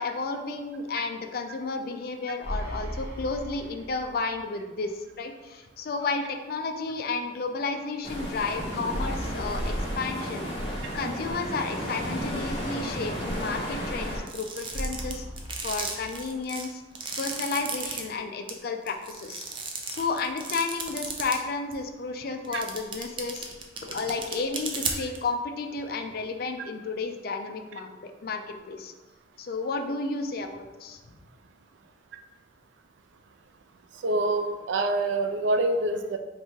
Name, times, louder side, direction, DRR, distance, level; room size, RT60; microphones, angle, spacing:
voice 1, 0.0-4.9 5.2-10.5 10.9-15.3 15.6-16.8 17.2-19.5 19.9-23.5 23.8-28.9 29.4-31.0, left 4 dB, 55° left, 6 dB, 0.4 m, -32 dB
sound 1, 2.4-4.4 4.8-4.9 8.9-10.9 14.7-16.7, equal, 50° right, 1.3 m, -37 dB
sound 2, 8.0-14.2, equal, 30° left, 0.9 m, -33 dB
sound 3, 14.3-18.0 18.5-18.6 18.9-21.4 21.7-21.8 22.4-25.2, right 5 dB, 30° right, 0.5 m, -34 dB
voice 2, 34.0-36.2, right 2 dB, 80° right, 7 dB, 0.4 m, -26 dB
3.3 x 2.9 x 4.5 m, 1.2 s
head